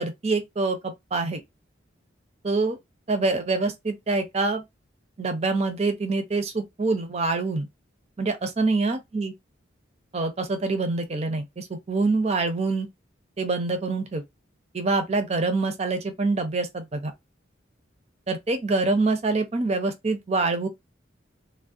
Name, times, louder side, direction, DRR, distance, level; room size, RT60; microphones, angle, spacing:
voice 1, 0.0-1.4 2.4-2.8 3.1-4.6 5.2-7.7 8.2-9.3 10.1-12.9 13.4-14.2 14.7-17.1 18.3-20.7, right 3 dB, 35° right, 0.5 m, -25 dB
2.3 x 2.1 x 2.5 m
head